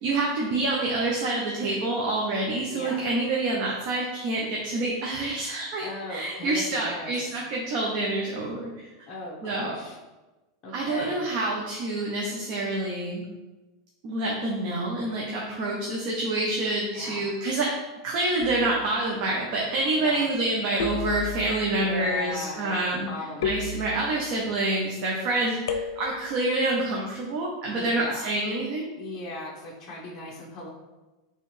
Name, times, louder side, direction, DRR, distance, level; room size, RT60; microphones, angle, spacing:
voice 1, 0.0-8.9 9.4-9.7 10.7-13.2 14.0-17.7 18.0-23.1 23.4-28.9, right 2 dB, 45° right, -2 dB, 0.8 m, -27 dB
voice 2, 2.7-3.0 5.8-7.2 9.1-10.0 10.6-11.2 16.9-17.3 20.0-20.3 21.7-22.7 23.0-23.5 27.7-28.3 28.9-30.7, left 2 dB, 25° left, -5 dB, 1.0 m, -38 dB
sound 1, 18.4-18.9 20.8-21.7 23.4-24.4 25.7-26.4, left 4 dB, 90° left, 0.5 m, -32 dB
4.5 x 3.2 x 3.3 m, 1.1 s
supercardioid pair, 145°, 2 cm